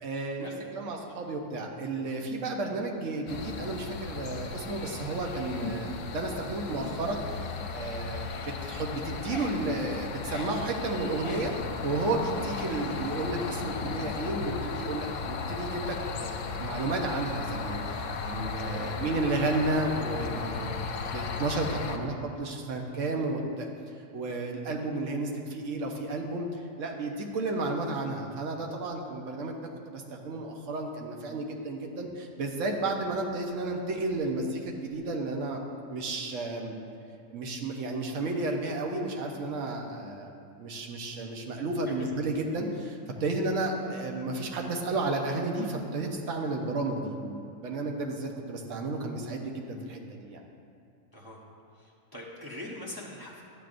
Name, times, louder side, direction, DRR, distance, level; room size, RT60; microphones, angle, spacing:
voice 1, 0.0-11.5 11.8-23.7 24.1-29.6 29.9-35.6 35.9-36.7 37.3-50.4, right 2 dB, 70° right, 1 dB, 1.2 m, -32 dB
sound 1, 3.3-22.0, left 4 dB, 75° left, 1.0 m, -36 dB
sound 2, 5.6-6.1 6.5-7.9 8.1-14.7, left 3 dB, 45° left, 0.4 m, -45 dB
voice 2, 18.5-18.9 41.9-42.0 51.1-51.4 51.7-53.4, left 1 dB, 20° right, -5 dB, 0.9 m, -43 dB
12.0 x 8.1 x 2.5 m, 2.4 s
omnidirectional pair, 1.4 m